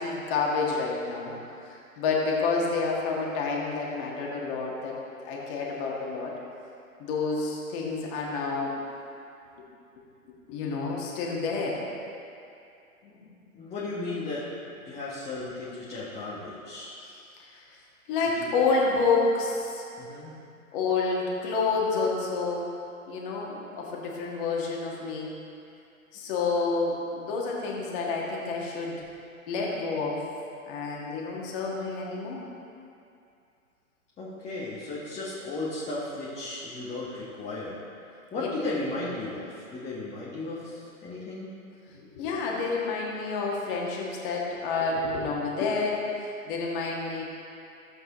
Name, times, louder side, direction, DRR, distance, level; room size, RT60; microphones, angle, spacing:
voice 1, 0.0-1.3 1.6-5.0 5.2-6.3 7.0-8.7 9.6-9.7 10.5-11.8 13.0-13.3 17.5-17.6 18.1-19.9 20.7-22.7 23.1-25.3 26.1-29.0 29.5-30.3 30.6-32.4 41.9-47.2, left 4 dB, 35° left, -3 dB, 1.9 m, -29 dB
voice 2, 13.5-14.5 14.8-16.9 18.4-18.5 20.0-20.3 34.2-37.8 38.3-41.5, left 2 dB, 15° left, -8 dB, 1.3 m, -35 dB
14.0 x 7.8 x 3.0 m, 2.6 s
figure-of-eight pair, 120°, 44 cm